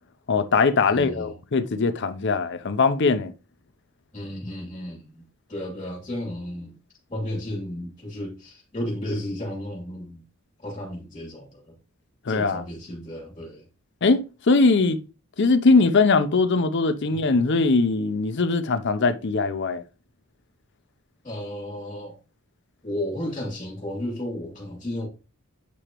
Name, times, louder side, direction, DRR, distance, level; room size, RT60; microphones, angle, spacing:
voice 1, 0.3-3.3 12.3-12.6 14.0-15.0 15.4-19.8, left 3 dB, 55° left, 0.6 m, -21 dB
voice 2, 0.8-1.3 4.1-5.2 5.5-6.7 7.1-10.2 10.6-11.7 12.3-13.7 17.1-17.2 21.2-22.2 22.8-25.1, left 1 dB, 25° left, 2.7 m, -33 dB
8.4 x 5.0 x 3.0 m
head